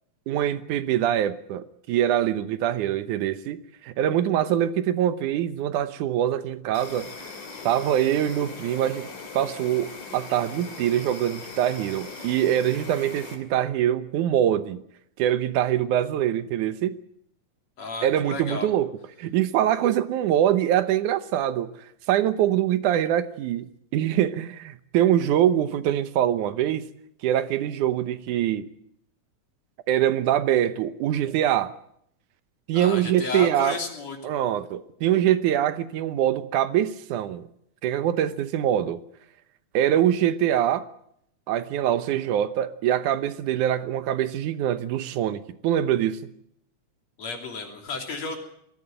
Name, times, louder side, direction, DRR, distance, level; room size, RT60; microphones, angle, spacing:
voice 1, 0.3-7.1 7.6-9.1 9.3-14.8 15.2-17.0 18.0-18.9 19.2-21.7 22.1-23.7 23.9-26.9 27.2-28.7 29.9-31.7 32.7-33.8 34.2-37.5 37.8-39.0 39.7-40.9 41.5-46.2, right 11 dB, 85° right, 2.4 m, -24 dB
Insect, 6.7-13.4, left 4 dB, 75° left, 4.2 m, -40 dB
voice 2, 17.8-18.7 32.7-34.3 47.2-48.4, left 4 dB, 60° left, 4.2 m, -33 dB
21.0 x 15.0 x 9.0 m
omnidirectional pair, 3.5 m